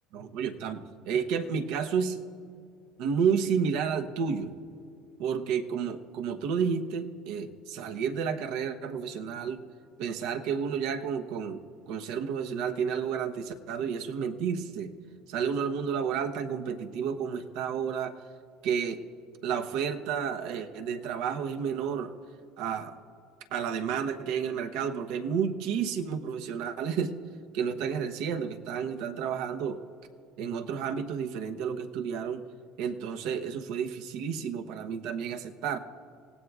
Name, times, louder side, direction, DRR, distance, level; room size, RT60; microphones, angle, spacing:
voice 1, 0.1-2.2 3.0-4.5 5.2-9.6 10.0-14.9 15.3-18.2 18.6-19.0 19.4-22.1 22.6-23.0 23.5-27.1 27.5-29.8 30.4-32.4 32.8-35.8, right 7 dB, 70° right, 6 dB, 1.0 m, -31 dB
27.0 x 17.5 x 2.4 m, 2.3 s
supercardioid pair, 120°, 0 cm